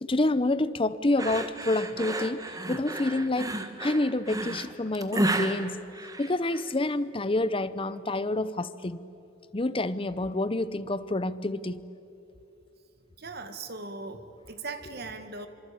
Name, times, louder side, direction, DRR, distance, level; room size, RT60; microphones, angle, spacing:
voice 1, 0.0-2.4 2.7-3.5 3.8-5.8 6.2-9.0 9.5-11.8, left 2 dB, 25° left, 0.8 m, -28 dB
sound 1, 1.2-6.7, right 1 dB, 20° right, 1.4 m, -32 dB
voice 2, 13.2-15.5, right 3 dB, 55° right, 1.9 m, -39 dB
25.5 x 24.5 x 8.6 m
head